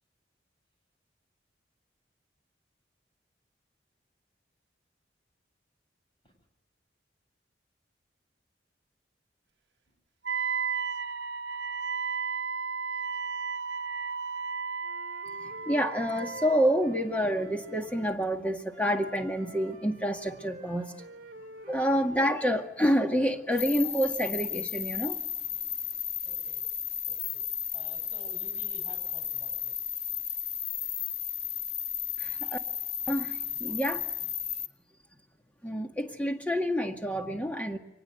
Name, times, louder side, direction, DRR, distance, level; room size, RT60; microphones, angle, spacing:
Wind instrument woodwind instrument, 10.2-16.7, right 5 dB, 80° right, 0.8 m, -34 dB
Wind instrument woodwind instrument 2, 14.8-18.2 18.7-22.5, right 1 dB, 50° right, 2.7 m, -48 dB
voice 1, 15.4-20.9 21.7-25.2 32.2-32.6 33.1-34.0 35.6-37.8, equal, 10° left, 4 dB, 2.0 m, -28 dB
voice 2, 21.7-22.1 26.2-26.6 27.1-27.4 27.7-29.9, equal, 25° left, 4 dB, 7.4 m, -52 dB
sound 1, 23.5-34.7, left 9 dB, 60° left, 1.6 m, -34 dB
24.0 x 20.0 x 8.0 m, 0.98 s
head